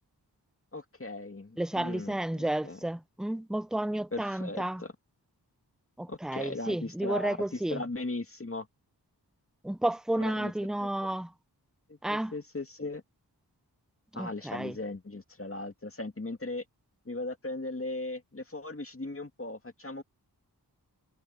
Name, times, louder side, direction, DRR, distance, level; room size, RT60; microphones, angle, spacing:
voice 1, 0.7-2.8 4.1-4.9 6.1-8.7 10.1-10.5 10.8-10.9 11.9-13.0 14.1-16.6 17.0-20.0, left 2 dB, 30° left, 2.4 m, -38 dB
voice 2, 1.6-4.8 6.0-7.8 9.6-11.3 12.0-12.3 14.1-14.7, right 1 dB, ahead, 0.7 m, -32 dB
cardioid pair, 45°, 41 cm